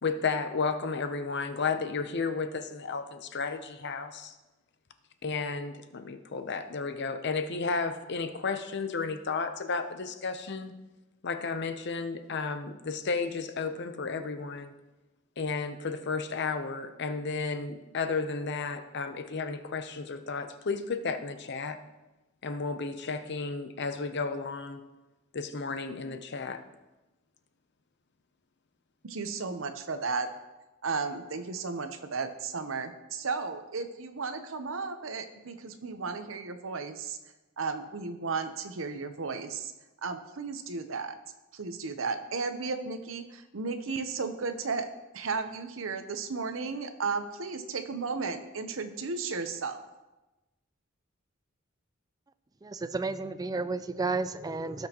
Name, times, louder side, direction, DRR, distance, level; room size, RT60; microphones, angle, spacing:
voice 1, 0.0-4.3 5.2-10.7 11.2-14.7 15.4-21.8 22.4-24.8 25.3-26.6, left 4 dB, 60° left, 9 dB, 0.7 m, -33 dB
voice 2, 29.0-30.3 30.8-37.2 37.6-39.7 40.0-41.2 41.5-44.9 45.1-49.8, right 4 dB, 75° right, 8 dB, 0.8 m, -34 dB
voice 3, 52.6-54.9, right 3 dB, 20° right, 12 dB, 0.4 m, -32 dB
17.0 x 6.1 x 3.0 m, 1.1 s
head